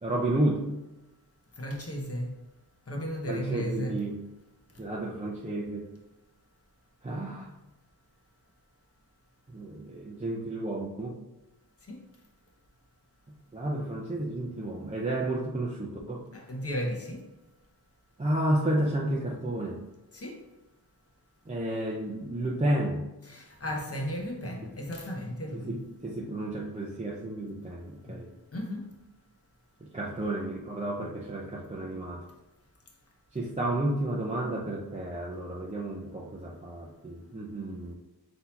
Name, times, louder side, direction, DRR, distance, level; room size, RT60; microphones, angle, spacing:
voice 1, 0.0-0.7 3.3-4.2 4.8-5.9 7.0-7.5 9.5-11.2 13.5-16.2 18.2-19.8 21.5-23.0 24.6-24.7 25.5-28.3 29.8-32.3 33.3-37.9, right 1 dB, 20° right, 0.6 m, -31 dB
voice 2, 1.6-2.3 2.9-4.0 11.9-12.0 16.3-17.2 20.1-20.4 23.3-25.8 28.1-28.2 28.5-28.9, equal, 40° left, 0.9 m, -34 dB
3.9 x 2.9 x 4.0 m
wide cardioid pair, 65°, 38 cm